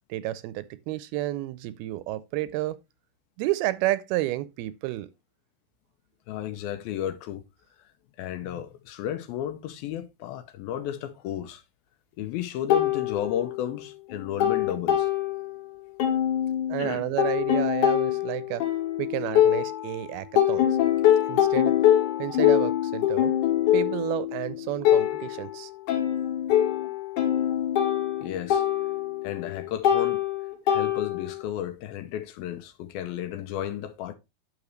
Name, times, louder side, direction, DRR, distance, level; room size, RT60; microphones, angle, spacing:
voice 1, 0.1-2.8 3.4-5.1 16.7-18.7 19.0-20.7 21.3-21.7 22.2-23.3 23.7-25.7, right 16 dB, 80° right, 2.4 m, -31 dB
voice 2, 6.3-7.4 7.8-7.9 8.2-11.6 12.2-15.1 16.8-17.0 28.2-28.7 29.2-30.2 30.7-34.2, left 10 dB, 75° left, 2.5 m, -33 dB
sound 1, 12.7-13.8 14.1-15.7 16.0-20.0 20.4-31.4, left 11 dB, 60° left, 2.6 m, -24 dB
9.9 x 7.0 x 3.1 m
omnidirectional pair, 4.6 m